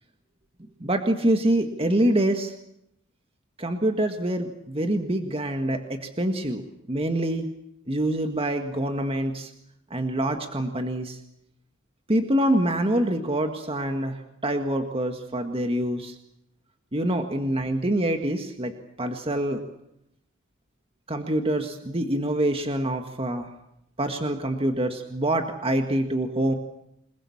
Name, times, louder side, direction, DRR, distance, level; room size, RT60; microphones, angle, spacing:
voice 1, 0.8-2.5 3.6-6.6 6.9-7.5 7.9-9.5 9.9-11.2 12.1-16.1 16.9-18.7 19.0-19.6 21.1-23.5 24.0-26.5, right 1 dB, 25° right, 5 dB, 1.8 m, -25 dB
28.0 x 21.0 x 7.3 m, 0.78 s
head